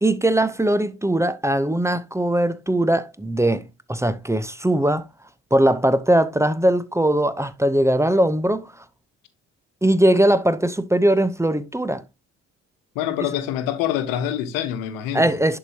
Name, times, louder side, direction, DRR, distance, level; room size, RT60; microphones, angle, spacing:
voice 1, 0.0-5.0 5.5-8.7 9.8-12.0 15.1-15.6, right 1 dB, 10° right, 0.9 m, -20 dB
voice 2, 12.9-15.4, left 10 dB, 80° left, 1.2 m, -26 dB
11.0 x 4.9 x 2.9 m
hypercardioid pair, 50°, 33 cm